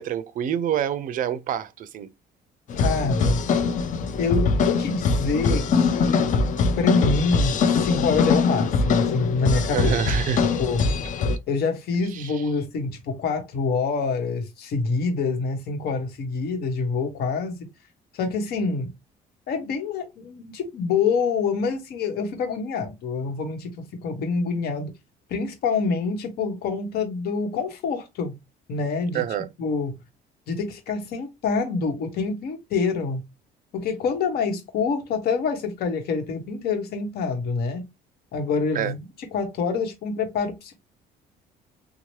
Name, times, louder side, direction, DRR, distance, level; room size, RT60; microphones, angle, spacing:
voice 1, 0.0-2.1 9.7-10.4 12.1-12.4 29.1-29.5 38.7-38.9, right 9 dB, 55° right, 0.4 m, -27 dB
sound 1, 2.7-11.4, left 4 dB, 50° left, 0.5 m, -22 dB
voice 2, 2.8-3.4 4.2-6.3 6.8-9.9 10.4-10.8 11.5-17.7 18.1-18.9 19.5-24.9 25.3-28.4 28.7-29.2 29.6-30.0 30.5-33.3 33.7-37.8 38.3-39.0 39.3-40.8, left 4 dB, 70° left, 1.0 m, -26 dB
2.8 x 2.0 x 3.0 m
cardioid pair, 110°, 17 cm